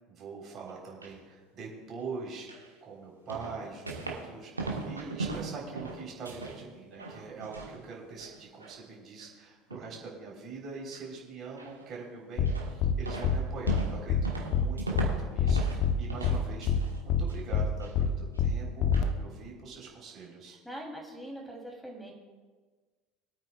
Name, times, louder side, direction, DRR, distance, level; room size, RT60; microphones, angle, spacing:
voice 1, 0.1-2.5 2.8-20.6, right 4 dB, 40° right, -3 dB, 4.0 m, -43 dB
sound 1, 0.7-1.1 2.5-2.7 3.3-4.3 4.6-6.6 6.9-7.8 8.1-8.8 9.2-9.3 9.7-10.0 10.9-11.1 11.6-12.0 12.5-12.8 13.1-15.8 16.1-17.0 17.3-17.9 18.4-18.5 18.9-19.1, right 3 dB, 90° right, 1.5 m, -38 dB
sound 2, 12.4-12.5 12.8-12.9 13.2-13.4 13.7-13.8 14.1-14.2 14.5-14.7 15.0-15.1 15.4-15.9 16.2-16.4 16.7-16.8 17.1-17.2 17.5-17.7 18.0-18.1 18.4-18.5 18.8-19.0, left 8 dB, 55° left, 0.8 m, -25 dB
voice 2, 20.7-22.1, right 1 dB, 5° left, 0 dB, 3.4 m, -42 dB
23.5 x 8.9 x 2.4 m, 1.4 s
figure-of-eight pair, 70°, 0 cm